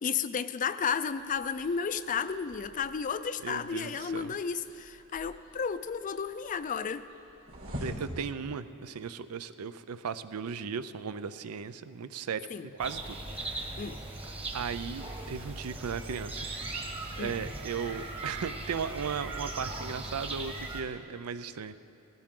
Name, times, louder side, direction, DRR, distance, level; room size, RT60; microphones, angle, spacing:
voice 1, 0.0-7.1 12.5-12.7 13.8-14.0 17.2-17.3, left 6 dB, 35° left, 12 dB, 0.4 m, -33 dB
sound 1, 1.1-8.2, equal, 65° right, 3.9 m, -46 dB
voice 2, 3.4-4.3 7.8-13.8 14.5-16.5 17.2-21.7, right 6 dB, 85° right, 13 dB, 0.5 m, -37 dB
sound 2, 12.8-20.8, right 2 dB, 25° right, 1.3 m, -39 dB
18.5 x 15.0 x 3.7 m, 2.8 s
head